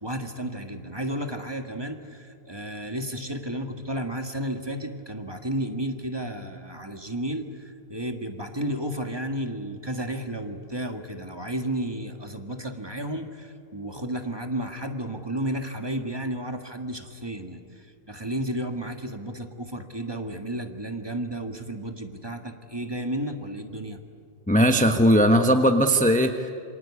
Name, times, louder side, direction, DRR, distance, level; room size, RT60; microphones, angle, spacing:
voice 1, 0.0-24.0, right 1 dB, 20° right, 5 dB, 1.7 m, -32 dB
voice 2, 24.5-26.5, equal, 5° left, 5 dB, 1.0 m, -19 dB
27.5 x 25.0 x 8.5 m, 2.3 s
omnidirectional pair, 1.2 m